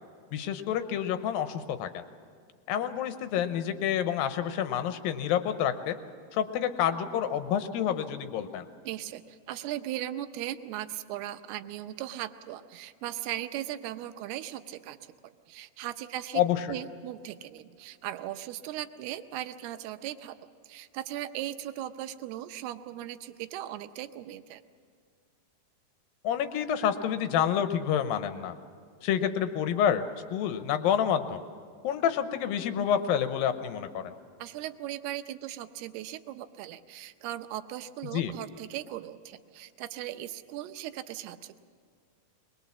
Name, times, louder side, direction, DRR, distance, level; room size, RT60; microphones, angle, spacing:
voice 1, 0.3-2.0 2.7-6.0 6.3-8.6 16.3-16.7 26.2-28.5 29.0-30.0 30.3-31.4 31.8-34.1 38.1-38.3, left 9 dB, 75° left, 9 dB, 2.5 m, -28 dB
voice 2, 8.8-15.0 15.5-16.4 16.7-20.4 20.7-24.6 34.4-41.6, right 13 dB, 85° right, 10 dB, 2.8 m, -38 dB
22.5 x 21.0 x 7.3 m, 2.1 s
omnidirectional pair, 4.5 m